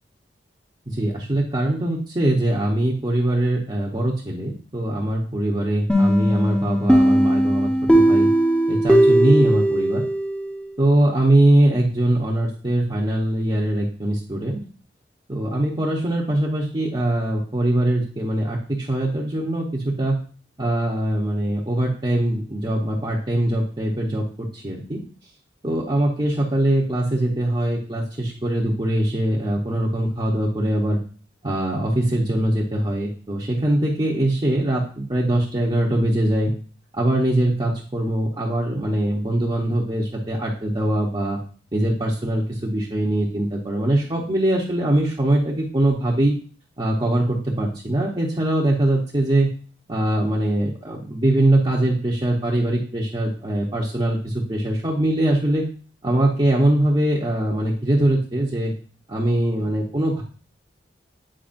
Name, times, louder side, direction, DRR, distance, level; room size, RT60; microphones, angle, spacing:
voice 1, 0.9-8.3 8.7-10.0 10.8-14.6 15.3-20.2 20.6-25.0 25.6-31.0 31.4-36.5 36.9-41.4 41.7-46.3 46.8-49.5 49.9-55.6 56.0-58.7 59.1-60.2, right 1 dB, 30° right, -5 dB, 0.9 m, -22 dB
sound 1, 5.9-10.6, right 1 dB, 5° left, 0.8 m, -18 dB
8.7 x 4.7 x 2.6 m, 0.41 s
head